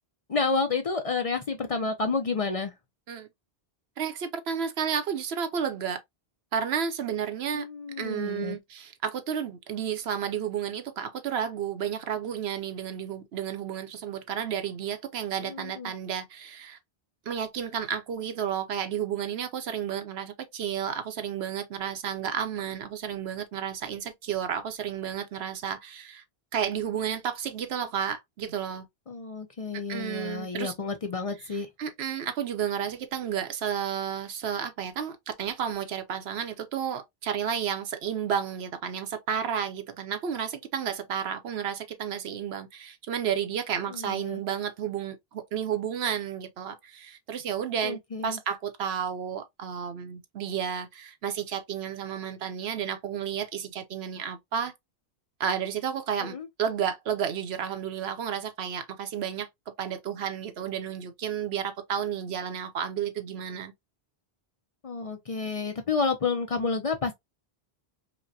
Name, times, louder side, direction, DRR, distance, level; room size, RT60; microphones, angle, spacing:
voice 1, 0.3-2.7 7.5-8.6 15.4-15.9 29.1-31.7 43.9-44.4 47.8-48.4 56.2-56.5 64.8-67.1, left 4 dB, 45° left, 0.5 m, -30 dB
voice 2, 4.0-6.0 6.5-7.7 8.0-16.8 17.3-26.2 26.5-28.9 29.7-30.7 31.8-54.7 55.4-59.5 59.8-63.7, right 8 dB, 90° right, 1.0 m, -32 dB
5.0 x 2.1 x 2.6 m
omnidirectional pair, 1.0 m